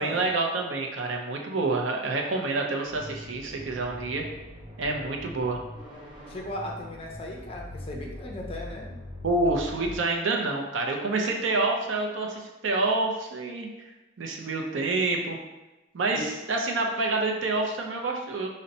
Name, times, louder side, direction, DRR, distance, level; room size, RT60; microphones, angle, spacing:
voice 1, 0.0-4.2 4.8-5.6 9.2-13.7 14.2-15.4 15.9-18.5, right 3 dB, 75° right, 1 dB, 0.5 m, -27 dB
sound 1, 2.9-10.0, left 1 dB, 25° right, 0.5 m, -42 dB
voice 2, 6.3-8.9 16.1-16.3, left 1 dB, 30° left, 0 dB, 0.4 m, -37 dB
2.6 x 2.1 x 4.0 m, 1.1 s
head